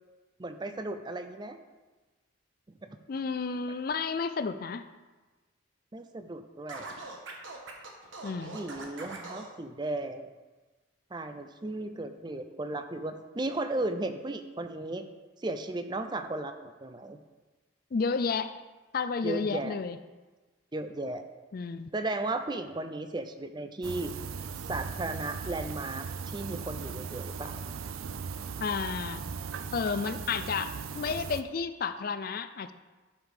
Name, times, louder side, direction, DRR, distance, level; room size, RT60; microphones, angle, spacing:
voice 1, 0.4-1.6 5.9-6.9 8.5-10.3 11.1-15.0 15.4-16.5 16.8-17.2 19.2-19.8 20.7-21.2 21.9-24.1 24.7-27.6, right 2 dB, 20° right, 8 dB, 0.5 m, -35 dB
voice 2, 3.1-4.9 8.2-8.6 17.9-18.5 18.9-20.0 21.5-21.9 28.6-29.2 29.7-32.7, left 5 dB, 45° left, 11 dB, 0.4 m, -31 dB
Scratching (performance technique), 6.7-9.5, right 3 dB, 70° right, 1.4 m, -42 dB
sound 1, 23.8-31.4, right 5 dB, 90° right, 0.5 m, -38 dB
11.5 x 5.3 x 5.0 m, 1.2 s
head